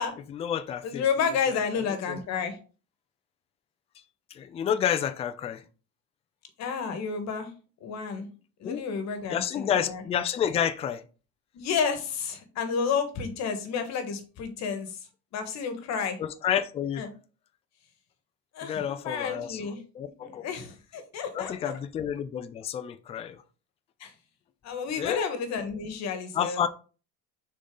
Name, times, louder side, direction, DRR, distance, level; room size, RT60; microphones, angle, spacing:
voice 1, 0.3-1.0 2.1-2.2 4.3-5.6 8.6-8.8 9.3-11.0 16.2-17.0 18.6-20.5 21.3-23.4 25.0-25.2 26.3-26.7, left 9 dB, 20° left, 0.3 m, -29 dB
voice 2, 0.8-2.6 6.6-7.5 7.8-8.3 8.6-10.0 11.5-15.0 15.3-16.2 17.0-17.1 18.5-21.7 24.0-24.1 24.6-26.6, left 6 dB, 50° left, 1.4 m, -31 dB
6.5 x 4.0 x 3.7 m
cardioid pair, 140°, 36 cm